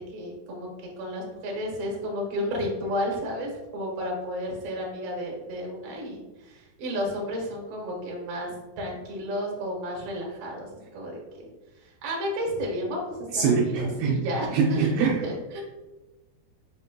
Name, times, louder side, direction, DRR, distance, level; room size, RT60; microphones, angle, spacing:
voice 1, 0.1-0.7 1.0-11.5 12.0-15.6, equal, 65° right, -1 dB, 2.3 m, -32 dB
voice 2, 13.3-14.1 14.5-15.2, right 5 dB, 80° right, -2 dB, 2.2 m, -23 dB
5.9 x 4.0 x 2.2 m, 1.1 s
omnidirectional pair, 4.6 m